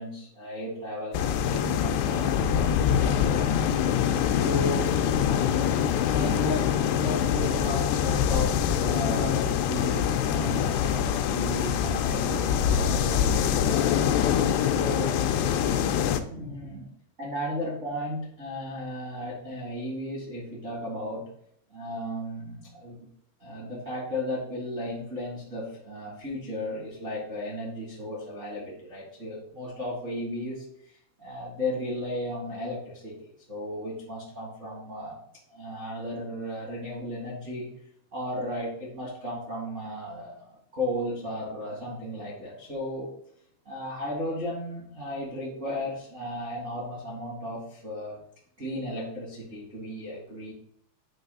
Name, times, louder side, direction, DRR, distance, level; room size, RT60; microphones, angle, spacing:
voice 1, 0.0-3.8 4.3-4.9 6.0-14.0 14.7-15.1 16.3-16.9 17.2-21.2 21.7-23.1 23.4-30.9 31.2-35.2 35.5-37.7 38.1-43.1 43.6-48.2 48.6-50.5, left 1 dB, 70° right, -6 dB, 0.7 m, -35 dB
sound 1, 1.1-16.2, left 9 dB, 85° left, 2.4 m, -24 dB
9.3 x 3.1 x 5.4 m, 0.66 s
omnidirectional pair, 5.3 m